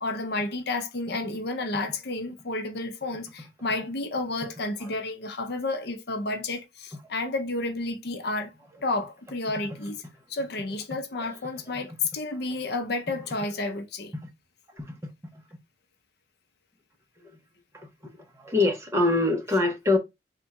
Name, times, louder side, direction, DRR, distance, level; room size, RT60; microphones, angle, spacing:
voice 1, 0.0-8.5 8.8-10.0 10.3-14.1, left 2 dB, 60° left, 0.7 m, -31 dB
voice 2, 18.3-20.0, left 2 dB, 15° right, 0.9 m, -25 dB
3.6 x 2.4 x 4.1 m
head